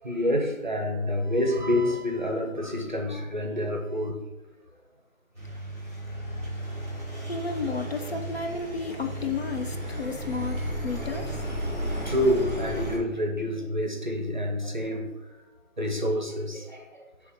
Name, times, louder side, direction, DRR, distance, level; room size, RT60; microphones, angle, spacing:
voice 1, 0.0-4.2 11.7-15.1 15.8-17.0, left 1 dB, 35° right, 2 dB, 0.7 m, -28 dB
Engine, 5.3-13.0, equal, 10° left, 1.0 m, -34 dB
voice 2, 7.3-11.4, left 4 dB, 50° left, 4 dB, 0.7 m, -32 dB
6.5 x 3.4 x 4.7 m, 1.1 s
figure-of-eight pair, 170°, 42 cm